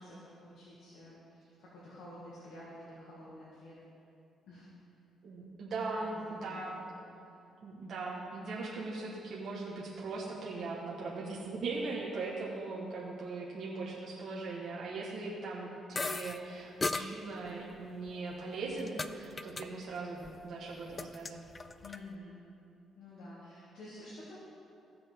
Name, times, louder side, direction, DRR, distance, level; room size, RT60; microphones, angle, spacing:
voice 1, 0.0-3.7 4.5-4.7 6.1-7.0 21.8-22.4 22.9-24.4, left 1 dB, 80° left, -9 dB, 2.3 m, -50 dB
voice 2, 5.2-6.8 7.6-21.4, right 3 dB, 60° right, -5 dB, 1.4 m, -39 dB
sound 1, 16.0-16.4 16.8-17.1 18.1-19.1 19.4-19.7 19.9-20.4 20.7-22.0, left 3 dB, 30° left, 0.4 m, -36 dB
16.0 x 6.8 x 3.7 m, 2.7 s
cardioid pair, 90°, 0 cm